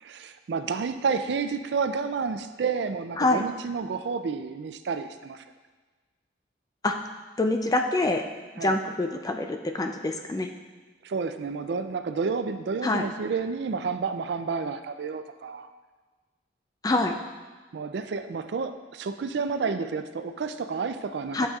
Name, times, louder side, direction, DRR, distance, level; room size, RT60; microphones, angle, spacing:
voice 1, 0.0-5.4 8.6-8.8 11.0-15.7 17.7-21.5, right 5 dB, 65° right, 9 dB, 0.4 m, -30 dB
voice 2, 7.4-8.2 8.6-10.5 12.8-13.1 16.8-17.2 21.3-21.5, left 2 dB, 20° left, 5 dB, 0.4 m, -25 dB
8.8 x 6.7 x 2.4 m, 1.3 s
head